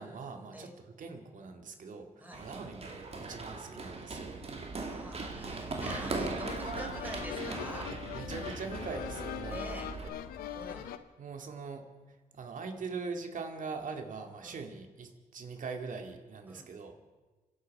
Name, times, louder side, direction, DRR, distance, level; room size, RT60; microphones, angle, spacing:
voice 1, 0.0-4.4 8.1-10.1 11.2-17.0, right 4 dB, 60° right, 5 dB, 2.3 m, -42 dB
Run, 2.3-10.1, right 3 dB, 45° right, 2.6 m, -39 dB
voice 2, 4.9-7.9 9.5-9.9 10.5-10.9 14.4-14.6 16.5-16.7, right 1 dB, 10° right, 2 dB, 4.9 m, -45 dB
sound 1, 5.8-11.0, left 10 dB, 85° left, 0.8 m, -42 dB
27.0 x 11.0 x 4.8 m, 1.2 s
supercardioid pair, 55°, 15 cm